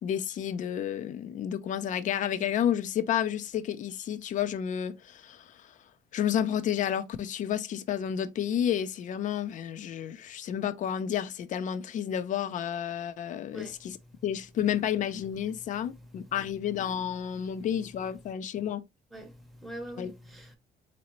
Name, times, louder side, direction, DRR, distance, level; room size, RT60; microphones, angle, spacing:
voice 1, 0.0-5.8 6.1-14.0 14.2-18.8 20.0-20.1, left 9 dB, 50° left, 0.5 m, -31 dB
voice 2, 13.5-14.2 15.5-16.3 17.3-17.6 19.1-20.6, right 1 dB, ahead, 0.8 m, -46 dB
4.0 x 2.7 x 2.9 m
cardioid pair, 110°, 17 cm